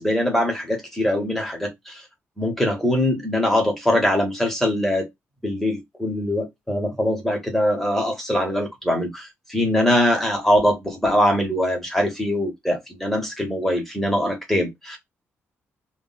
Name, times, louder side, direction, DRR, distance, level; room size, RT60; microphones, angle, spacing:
voice 1, 0.0-2.0 2.4-5.1 5.4-15.0, left 1 dB, 5° left, 0.8 m, -22 dB
2.1 x 2.1 x 3.8 m
cardioid pair, 150°, 5 cm